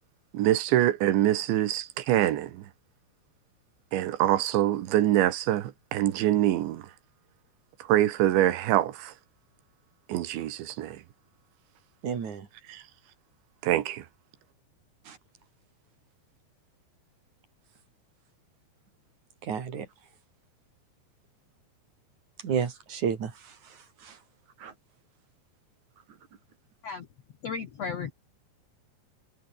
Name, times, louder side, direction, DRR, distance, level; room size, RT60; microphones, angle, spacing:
voice 1, 0.3-2.7 3.9-6.8 7.9-9.1 10.1-11.0 12.7-12.8 13.6-14.1, right 13 dB, 80° right, 3.8 m, -25 dB
voice 2, 12.0-12.5 15.1-15.2 19.4-19.9 22.4-24.2 24.6-24.7, right 7 dB, 45° right, 3.9 m, -32 dB
voice 3, 27.4-28.1, left 5 dB, 60° left, 1.7 m, -34 dB
omnidirectional pair, 5.1 m